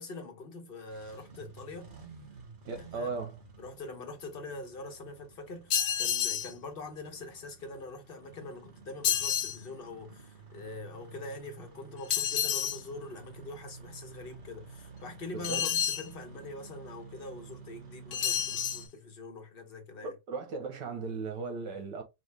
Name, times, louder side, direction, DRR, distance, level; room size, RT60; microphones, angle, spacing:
voice 1, 0.0-1.9 2.7-3.1 3.6-20.2, left 2 dB, 40° left, 1.0 m, -44 dB
Engine starting, 0.8-18.9, right 5 dB, 35° right, 1.0 m, -51 dB
voice 2, 2.7-3.4 15.3-15.6 20.0-22.0, right 4 dB, 80° right, 1.8 m, -37 dB
sound 1, 5.7-6.5 9.0-9.6 12.1-12.8 15.4-16.1 18.1-18.8, left 9 dB, 75° left, 0.7 m, -29 dB
5.2 x 2.4 x 3.4 m
omnidirectional pair, 1.9 m